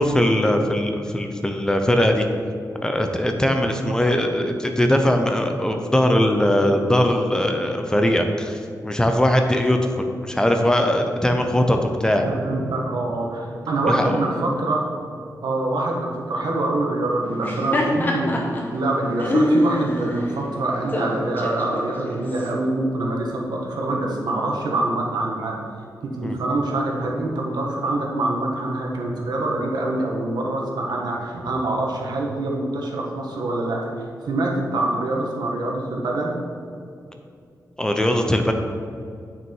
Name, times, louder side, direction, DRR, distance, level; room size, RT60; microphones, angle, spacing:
voice 1, 0.0-2.3 2.8-12.2 13.9-14.0 26.2-26.4 37.8-38.5, left 1 dB, 10° left, 4 dB, 0.6 m, -20 dB
voice 2, 3.6-4.0 12.2-14.9 15.4-18.4 18.7-25.8 26.1-36.3, right 2 dB, 85° right, -2 dB, 1.6 m, -25 dB
Laughter, 17.3-22.5, left 1 dB, 30° left, 1.1 m, -25 dB
9.2 x 6.0 x 4.6 m, 2.4 s
wide cardioid pair, 180°, 7 cm